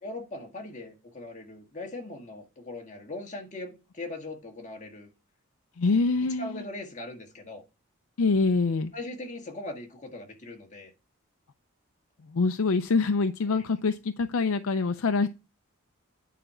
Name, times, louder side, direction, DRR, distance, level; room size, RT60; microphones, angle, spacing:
voice 1, 0.0-5.1 6.4-7.6 8.9-10.9 13.5-13.6, left 2 dB, 35° left, 1.7 m, -40 dB
voice 2, 5.8-6.6 8.2-8.9 12.3-15.3, left 4 dB, 80° left, 0.5 m, -25 dB
9.3 x 5.0 x 4.3 m
head